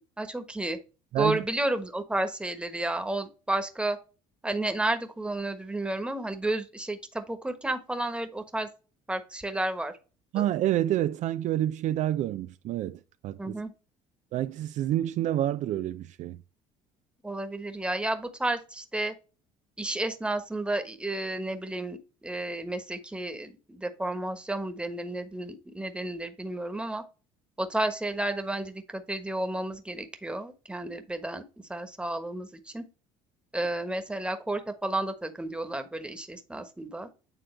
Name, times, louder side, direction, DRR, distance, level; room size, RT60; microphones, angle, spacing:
voice 1, 0.2-0.8 1.2-4.0 4.4-8.7 9.1-9.9 10.3-10.4 13.4-13.7 17.2-19.1 19.8-27.0 27.6-31.4 31.7-32.8 33.5-37.1, right 2 dB, 5° right, 1.2 m, -32 dB
voice 2, 1.1-1.4 10.3-13.6 14.3-16.4, right 12 dB, 55° right, 0.4 m, -28 dB
9.0 x 3.7 x 3.2 m
supercardioid pair, 85°, 14 cm